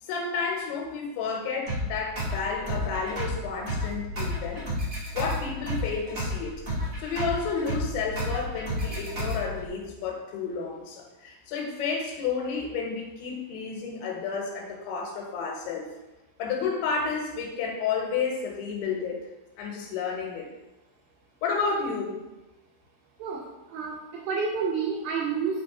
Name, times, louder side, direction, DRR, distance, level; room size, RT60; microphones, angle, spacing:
voice 1, 0.0-4.6 5.1-6.6 7.0-15.9 16.4-19.3 19.6-20.5 21.4-22.2, left 5 dB, 80° left, 0 dB, 3.5 m, -31 dB
sound 1, 1.7-9.7, left 1 dB, 30° right, 1.5 m, -32 dB
voice 2, 23.7-25.6, right 5 dB, 85° right, -4 dB, 2.0 m, -29 dB
8.3 x 4.1 x 4.3 m, 1.0 s
omnidirectional pair, 5.4 m